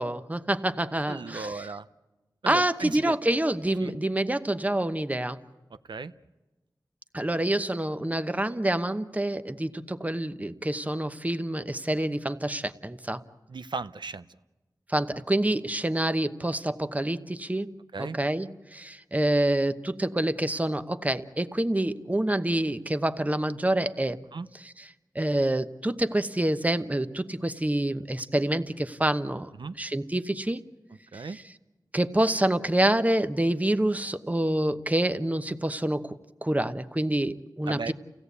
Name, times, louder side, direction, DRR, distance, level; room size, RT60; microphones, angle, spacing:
voice 1, 0.0-1.5 2.5-5.4 7.1-13.2 14.9-17.7 18.0-24.2 25.1-29.5 29.8-30.6 31.1-31.2 31.9-36.2 36.4-37.9, right 1 dB, 20° right, 1.0 m, -27 dB
voice 2, 1.1-1.9 2.4-3.2 3.8-4.0 5.7-6.1 13.5-14.3 17.9-18.2 24.3-24.5 29.5-29.8 31.1-31.4 37.7-37.9, right 4 dB, 80° right, 0.7 m, -36 dB
29.5 x 17.0 x 8.3 m
wide cardioid pair, 80°, 8 cm